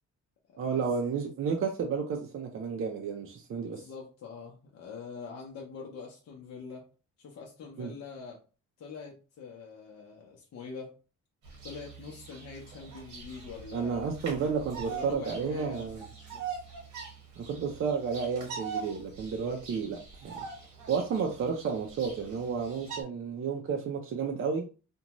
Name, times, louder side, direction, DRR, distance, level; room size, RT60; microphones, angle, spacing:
voice 1, 0.6-3.9 7.8-7.9 13.7-16.1 17.4-20.4 20.9-24.6, right 5 dB, 45° right, 2 dB, 0.5 m, -32 dB
voice 2, 3.5-6.9 7.2-8.4 8.8-11.0 11.6-14.1 14.8-16.6, left 5 dB, 60° left, -1 dB, 0.7 m, -44 dB
Bird vocalization bird call bird song, 11.4-23.0, right 5 dB, 85° right, 1.1 m, -43 dB
2.6 x 2.2 x 2.9 m, 0.34 s
cardioid pair, 115°, 29 cm